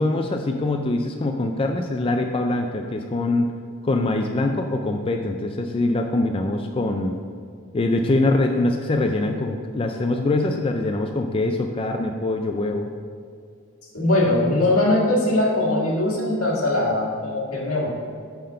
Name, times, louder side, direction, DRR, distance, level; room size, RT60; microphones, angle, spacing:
voice 1, 0.0-3.5 3.8-7.1 7.7-12.9, left 2 dB, 25° left, 4 dB, 0.3 m, -23 dB
voice 2, 13.9-18.0, left 1 dB, 85° left, -4 dB, 1.7 m, -21 dB
5.7 x 5.0 x 5.5 m, 2.2 s
head